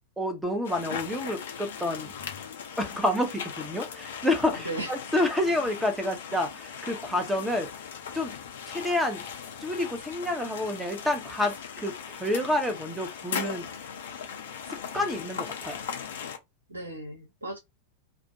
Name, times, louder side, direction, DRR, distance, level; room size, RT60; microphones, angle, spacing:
voice 1, 0.2-2.1 2.8-7.7 8.1-8.3 8.7-9.2 9.6-13.7 14.9-15.8, left 1 dB, 5° right, 0.8 m, -29 dB
sound 1, 0.6-16.4, left 7 dB, 60° left, 0.5 m, -39 dB
voice 2, 4.6-4.9 16.7-17.6, right 2 dB, 80° right, 1.0 m, -36 dB
2.4 x 2.2 x 2.7 m
figure-of-eight pair, 90°, 0 cm